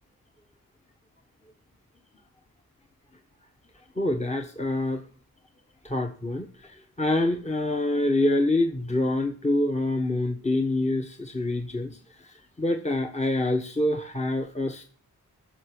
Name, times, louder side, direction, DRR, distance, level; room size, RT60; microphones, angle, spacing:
voice 1, 4.0-5.0 5.8-14.8, left 1 dB, 20° left, 4 dB, 1.4 m, -26 dB
11.0 x 6.8 x 8.3 m, 0.42 s
cardioid pair, 60°, 36 cm